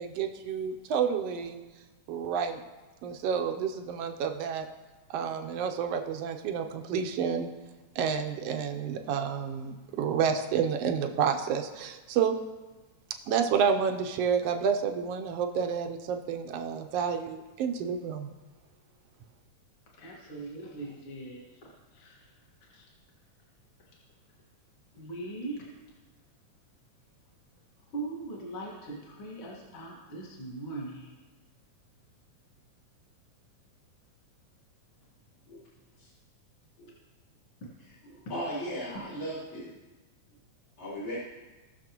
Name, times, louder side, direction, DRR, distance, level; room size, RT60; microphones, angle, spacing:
voice 1, 0.0-1.6 2.1-2.6 3.0-4.7 5.1-7.5 7.9-12.4 13.3-18.3, right 7 dB, 75° right, 5 dB, 1.5 m, -29 dB
voice 2, 20.0-22.3 22.6-22.9 23.9-24.0 24.9-25.7 27.9-31.2, right 2 dB, 45° left, -4 dB, 2.3 m, -40 dB
voice 3, 38.1-39.7 40.8-41.2, equal, 75° left, -11 dB, 4.9 m, -36 dB
19.0 x 6.7 x 3.0 m, 1.2 s
omnidirectional pair, 3.4 m